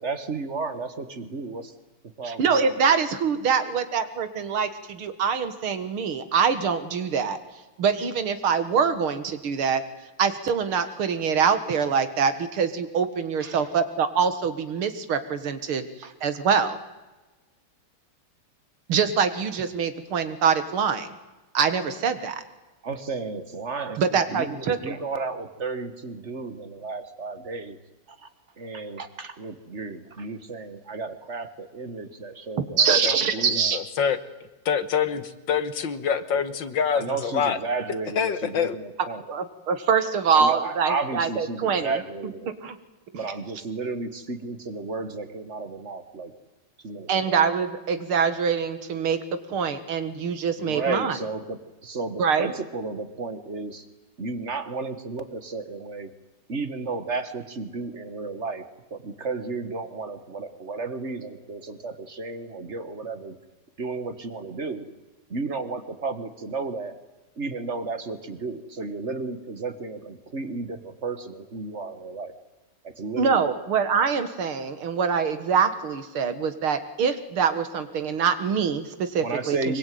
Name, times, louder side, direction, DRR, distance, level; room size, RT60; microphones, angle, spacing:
voice 1, 0.0-1.7 2.2-2.9 13.4-13.6 16.0-16.1 22.8-27.8 28.1-28.3 28.6-33.8 36.9-39.2 40.3-42.5 43.1-46.3 46.8-47.4 50.6-53.8 54.2-56.1 56.5-58.6 58.9-63.4 63.8-64.8 65.3-67.0 67.4-72.3 72.9-73.6 79.2-79.8, right 3 dB, 35° right, 11 dB, 1.8 m, -33 dB
voice 2, 2.2-7.4 7.8-9.8 10.2-16.8 18.9-21.1 21.5-22.4 24.0-25.0 32.6-33.8 39.3-42.0 42.6-42.8 43.1-43.3 47.1-49.2 49.5-51.2 52.2-52.5 73.2-79.8, right 6 dB, 80° right, 11 dB, 2.6 m, -24 dB
voice 3, 33.4-34.2 34.7-37.6 38.2-38.8, left 7 dB, 65° left, 12 dB, 1.9 m, -25 dB
25.0 x 22.5 x 9.4 m, 1.1 s
omnidirectional pair, 2.3 m